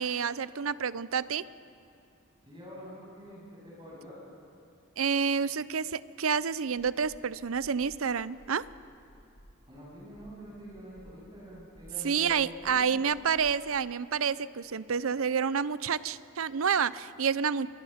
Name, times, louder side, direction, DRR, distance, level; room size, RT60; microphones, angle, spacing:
voice 1, 0.0-1.4 5.0-8.6 12.0-17.7, right 6 dB, 80° right, 17 dB, 0.6 m, -29 dB
voice 2, 2.4-4.2 9.7-12.8, equal, 25° right, -7 dB, 7.9 m, -46 dB
sound 1, 6.3-6.4 6.7-7.2 7.5-8.0 8.3-8.8 9.1-9.5 9.9-10.3 10.7-11.1 11.5-11.9 12.3-12.7 13.0-14.3, equal, 45° right, 4.7 m, -55 dB
26.0 x 23.0 x 5.8 m, 2.5 s
head